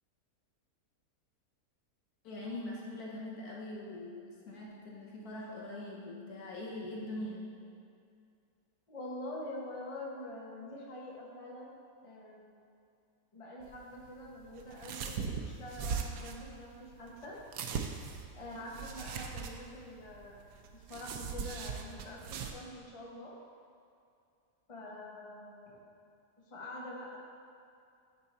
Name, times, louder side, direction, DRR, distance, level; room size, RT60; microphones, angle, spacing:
voice 1, 2.2-7.5, left 1 dB, 75° left, -3 dB, 1.7 m, -42 dB
voice 2, 8.9-11.7 12.0-12.6 13.3-17.4 18.3-20.4 20.7-23.3 24.7-25.8 26.5-27.2, left 1 dB, 25° left, -4 dB, 1.0 m, -45 dB
sound 1, 13.6-22.5, right 6 dB, 85° right, 1.2 m, -40 dB
9.5 x 4.6 x 4.1 m, 2.4 s
omnidirectional pair, 1.6 m